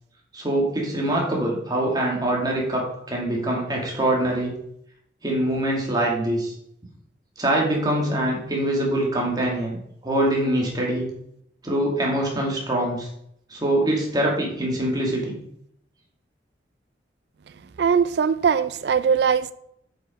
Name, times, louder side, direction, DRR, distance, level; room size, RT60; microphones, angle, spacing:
voice 1, 0.3-4.6 5.2-6.5 7.4-11.1 11.6-13.1 13.5-15.4, right 1 dB, 20° right, 2.1 m, -24 dB
voice 2, 17.8-19.5, right 6 dB, 60° right, 0.3 m, -20 dB
7.9 x 5.4 x 5.2 m
head